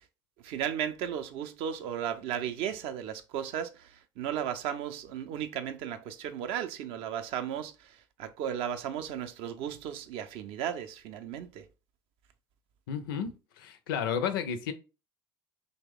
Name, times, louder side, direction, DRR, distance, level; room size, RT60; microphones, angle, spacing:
voice 1, 0.4-11.6, right 9 dB, 55° right, 0.4 m, -35 dB
voice 2, 12.9-14.7, left 7 dB, 70° left, 0.4 m, -32 dB
2.9 x 2.1 x 3.6 m
figure-of-eight pair, 65°, 12 cm